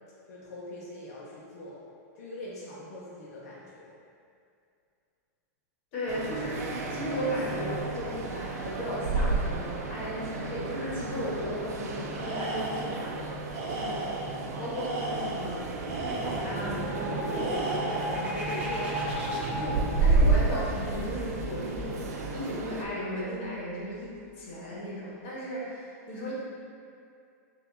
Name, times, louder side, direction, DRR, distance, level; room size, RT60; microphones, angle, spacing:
voice 1, 0.3-1.8 2.1-3.9, left 1 dB, 75° left, -6 dB, 0.7 m, -43 dB
voice 2, 5.9-13.2 13.7-14.1 14.6-15.6 15.9-22.1 22.3-26.3, equal, 45° left, -7 dB, 1.2 m, -35 dB
sound 1, 6.1-22.8, right 3 dB, 90° right, 0.5 m, -31 dB
Tools, 12.1-13.0 13.5-14.3 14.7-16.6 17.3-18.2, right 2 dB, 60° right, 0.9 m, -36 dB
sound 2, 15.6-23.1, equal, 15° right, 0.4 m, -36 dB
5.9 x 2.6 x 2.5 m, 2.4 s
supercardioid pair, 170°, 8 cm